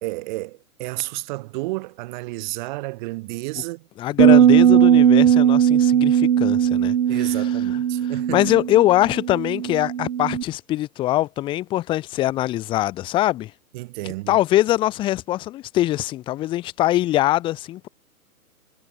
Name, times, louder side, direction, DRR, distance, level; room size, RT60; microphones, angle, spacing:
voice 1, 0.0-3.9 4.2-4.9 7.1-8.4 13.7-14.4, right 21 dB, 30° right, 3.4 m, -32 dB
voice 2, 4.0-6.9 8.3-13.5 14.3-17.9, left 15 dB, 10° left, 1.0 m, -22 dB
sound 1, 4.2-10.4, right 9 dB, 60° right, 0.9 m, -17 dB
figure-of-eight pair, 140°, 46 cm